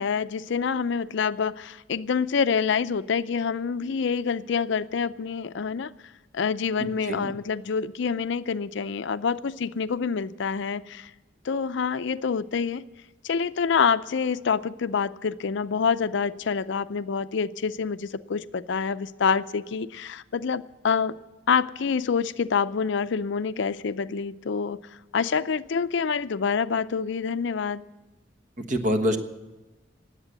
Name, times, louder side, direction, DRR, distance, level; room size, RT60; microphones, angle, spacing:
voice 1, 0.0-5.9 6.3-11.1 11.4-12.8 13.2-21.2 21.5-24.8 25.1-27.8, left 6 dB, 65° left, 14 dB, 0.5 m, -27 dB
voice 2, 6.8-7.3 28.7-29.2, equal, 40° right, 6 dB, 1.3 m, -26 dB
20.0 x 8.2 x 8.0 m, 1.1 s
head